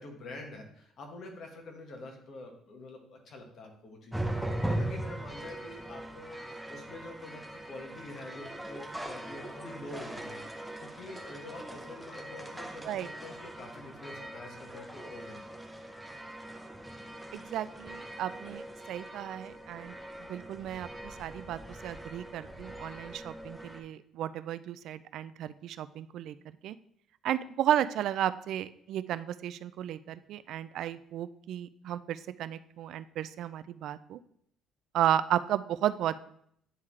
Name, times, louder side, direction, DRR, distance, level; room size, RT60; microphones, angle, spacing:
voice 1, 0.0-4.3 4.6-10.4 10.8-15.5, left 2 dB, 55° left, 2 dB, 1.6 m, -46 dB
sound 1, 4.1-23.8, right 1 dB, 5° right, 0.7 m, -40 dB
voice 2, 17.3-20.0 20.3-26.4 26.6-26.8 27.2-34.2 34.9-36.2, right 11 dB, 70° right, 14 dB, 0.3 m, -33 dB
9.6 x 3.6 x 3.2 m, 0.68 s
cardioid pair, 105°, 0 cm